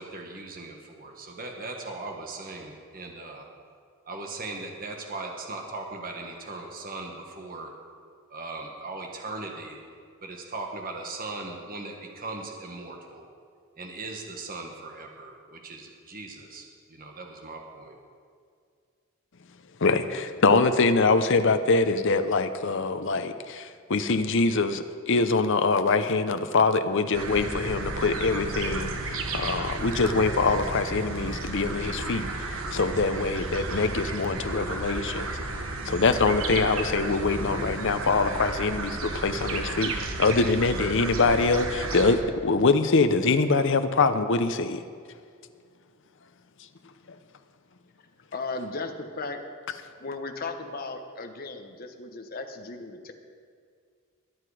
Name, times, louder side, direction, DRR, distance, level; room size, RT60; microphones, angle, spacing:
voice 1, 0.0-3.5 4.1-7.7 8.3-9.8 10.2-13.3 13.8-17.9, right 3 dB, 40° right, 2 dB, 1.4 m, -39 dB
voice 2, 19.8-32.3 32.7-35.3 35.9-39.9 40.2-44.8, left 3 dB, 60° left, 9 dB, 0.7 m, -24 dB
sound 1, 27.1-42.2, right 2 dB, 70° right, 1.3 m, -33 dB
voice 3, 48.3-49.4 50.0-53.1, left 3 dB, 45° left, 5 dB, 1.1 m, -36 dB
21.5 x 7.9 x 4.9 m, 2.1 s
head